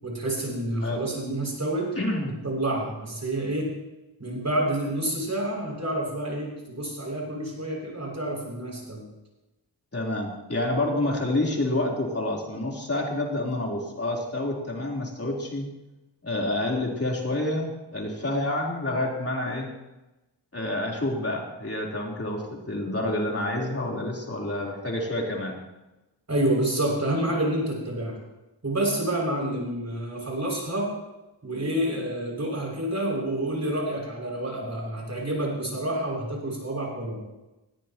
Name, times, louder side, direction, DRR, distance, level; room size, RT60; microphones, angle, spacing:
voice 1, 0.0-1.9 2.4-3.7 4.2-9.0 26.3-28.2 28.6-30.9 31.4-37.2, right 1 dB, 35° right, -1 dB, 6.9 m, -28 dB
voice 2, 2.0-2.3 9.9-15.7 16.2-19.7 20.5-25.6, left 1 dB, 30° left, -2 dB, 3.9 m, -28 dB
20.0 x 16.5 x 3.1 m, 1.0 s
cardioid pair, 70°, 45 cm